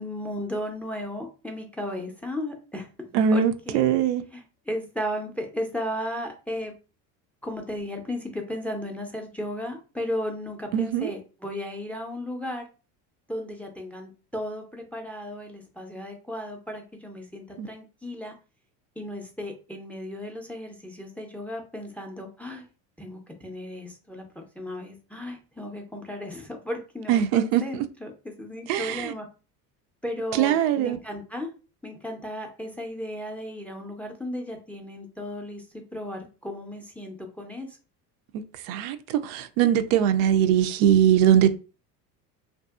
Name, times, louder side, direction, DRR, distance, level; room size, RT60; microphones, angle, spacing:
voice 1, 0.0-2.9 3.3-3.8 4.3-6.7 7.4-12.6 13.3-18.3 19.0-22.7 23.0-29.3 30.0-31.5 31.8-37.7, left 1 dB, 5° left, 0.5 m, -35 dB
voice 2, 3.1-4.2 10.7-11.1 17.6-17.7 27.1-27.6 28.7-29.1 30.4-31.0 38.7-39.0 39.2-41.6, right 9 dB, 70° right, 0.5 m, -21 dB
2.6 x 2.5 x 2.4 m
supercardioid pair, 95°, 46 cm